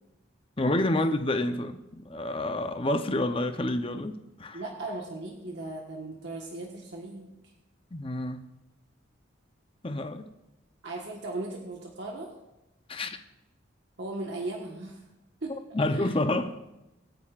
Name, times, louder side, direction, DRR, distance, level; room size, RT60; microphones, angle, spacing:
voice 1, 0.6-4.6 7.9-8.4 9.8-10.3 12.9-13.2 15.7-16.6, left 1 dB, 25° left, 0.7 m, -28 dB
voice 2, 4.5-7.3 10.8-12.3 14.0-15.0 15.4-16.1, right 2 dB, 60° right, 1.4 m, -37 dB
25.0 x 9.1 x 2.5 m
head